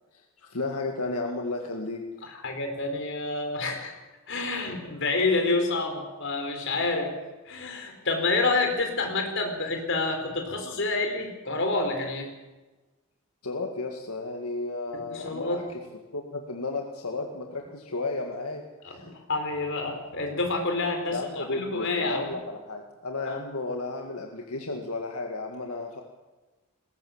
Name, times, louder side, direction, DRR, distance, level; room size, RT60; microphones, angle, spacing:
voice 1, 0.1-2.0 13.4-15.8 16.1-19.1 21.1-26.0, left 3 dB, 85° left, 2 dB, 2.1 m, -33 dB
voice 2, 2.2-3.9 4.3-7.1 7.4-12.3 15.1-15.6 18.8-22.3 23.3-23.4, left 3 dB, 55° left, 3 dB, 4.6 m, -28 dB
21.0 x 18.5 x 7.4 m, 1.2 s
head